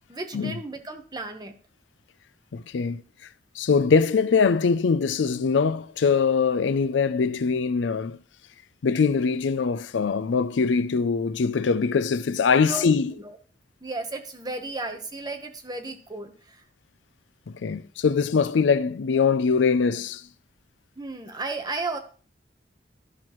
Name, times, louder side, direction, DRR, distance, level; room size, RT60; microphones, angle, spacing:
voice 1, 0.1-1.5 12.6-13.4 13.8-16.6 21.0-22.0, right 2 dB, 25° right, 1.1 m, -34 dB
voice 2, 2.5-3.0 3.6-8.2 8.8-13.1 17.5-20.2, left 5 dB, 90° left, 0.4 m, -22 dB
12.5 x 6.0 x 3.1 m
head